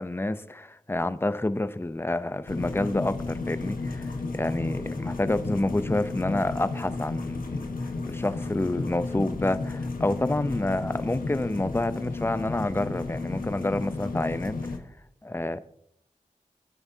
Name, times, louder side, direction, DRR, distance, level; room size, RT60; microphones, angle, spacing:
voice 1, 0.0-7.7 8.0-14.8 15.2-15.6, left 2 dB, 15° left, 13 dB, 0.7 m, -28 dB
sound 1, 2.5-14.8, left 3 dB, 80° left, 1.2 m, -33 dB
19.0 x 9.6 x 2.8 m, 0.70 s
cardioid pair, 40°, 14 cm